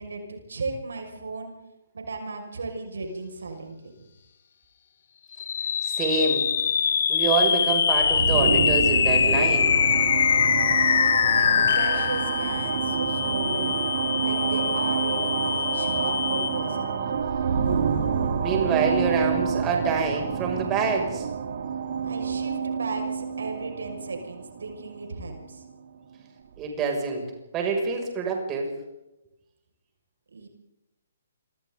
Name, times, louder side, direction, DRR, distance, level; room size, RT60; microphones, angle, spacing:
voice 1, 0.0-1.6 1.9-3.9 11.3-13.8 14.2-17.0 22.0-25.6 30.3-30.5, right 3 dB, 70° right, 3 dB, 6.2 m, -35 dB
sound 1, 5.3-16.9, left 7 dB, 55° left, 2.2 m, -24 dB
voice 2, 5.8-6.5 7.1-9.7 18.4-21.3 26.6-27.3 27.5-28.7, right 4 dB, 20° right, 1 dB, 6.8 m, -26 dB
sound 2, 7.9-25.6, right 6 dB, 55° right, 3.2 m, -28 dB
29.5 x 26.0 x 4.0 m, 0.94 s
figure-of-eight pair, 130°, 0 cm